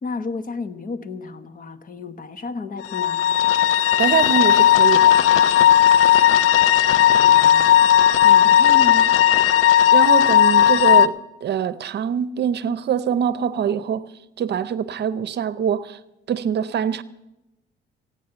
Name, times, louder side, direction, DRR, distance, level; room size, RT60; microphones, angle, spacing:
voice 1, 0.0-3.3 6.9-9.2, left 4 dB, 45° left, 10 dB, 1.2 m, -33 dB
sound 1, 2.8-11.1, left 10 dB, 85° left, 0.5 m, -15 dB
voice 2, 4.0-5.2 8.4-8.5 9.9-14.0 14.4-16.0 16.3-17.0, right 8 dB, 60° right, 16 dB, 0.7 m, -24 dB
16.0 x 9.5 x 6.9 m, 0.94 s
cardioid pair, 90°, 20 cm